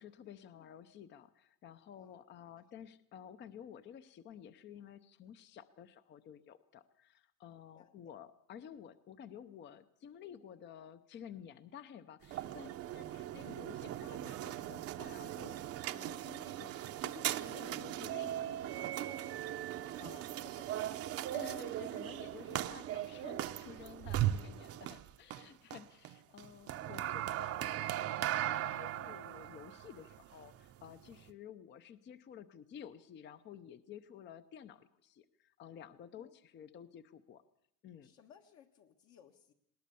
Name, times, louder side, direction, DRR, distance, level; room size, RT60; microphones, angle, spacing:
voice 1, 0.0-15.6 15.9-20.5 21.3-37.4 37.8-38.1, left 8 dB, 35° left, 13 dB, 0.7 m, -53 dB
sound 1, 12.2-31.3, right 12 dB, 45° right, 0.8 m, -39 dB
voice 2, 12.4-12.8 18.9-19.5 20.4-21.1 24.8-24.9 36.2-36.3 38.0-39.5, left 9 dB, 55° left, 3 dB, 1.5 m, -62 dB
19.5 x 19.0 x 7.0 m, 0.73 s
cardioid pair, 150°, 34 cm